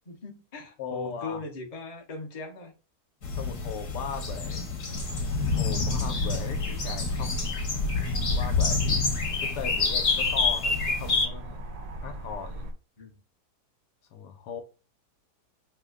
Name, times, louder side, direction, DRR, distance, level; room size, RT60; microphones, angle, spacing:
voice 1, 0.1-2.7 13.0-13.2, left 3 dB, 35° left, 0.6 m, -40 dB
voice 2, 0.8-1.4 3.3-4.7 5.6-7.4 8.3-11.6 12.0-12.7 14.1-14.6, left 6 dB, 90° left, 1.3 m, -38 dB
sound 1, 3.2-11.3, left 4 dB, 55° left, 1.2 m, -27 dB
sound 2, 4.9-12.7, equal, 60° right, 0.7 m, -39 dB
3.2 x 2.1 x 3.5 m
omnidirectional pair, 1.7 m